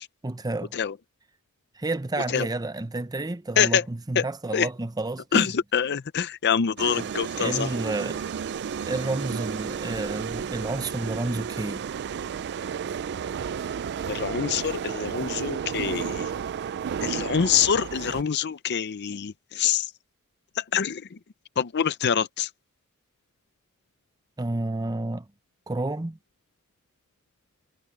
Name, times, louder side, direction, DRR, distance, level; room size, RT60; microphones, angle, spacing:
voice 1, 0.2-0.7 1.7-5.5 6.9-8.2 8.8-11.9 24.4-25.3 25.7-26.2, right 2 dB, 20° right, 0.7 m, -30 dB
voice 2, 5.3-7.7 14.1-16.3 17.0-19.9 20.6-21.2 21.6-22.5, left 7 dB, 50° left, 0.5 m, -25 dB
sound 1, 6.8-18.2, right 7 dB, 50° right, 0.4 m, -32 dB
head